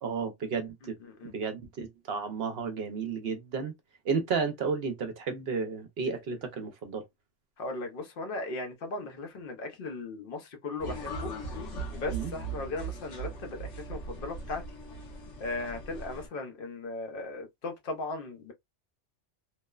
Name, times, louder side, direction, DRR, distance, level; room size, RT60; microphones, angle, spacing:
voice 1, 0.0-1.0 1.2-3.7 4.0-7.0 12.1-12.3, right 5 dB, 65° right, 0.8 m, -32 dB
voice 2, 7.6-11.3 11.9-14.6 15.4-18.5, left 2 dB, 55° left, 0.9 m, -37 dB
sound 1, 10.8-16.3, right 3 dB, 90° left, 1.3 m, -39 dB
3.0 x 2.1 x 2.2 m
omnidirectional pair, 1.2 m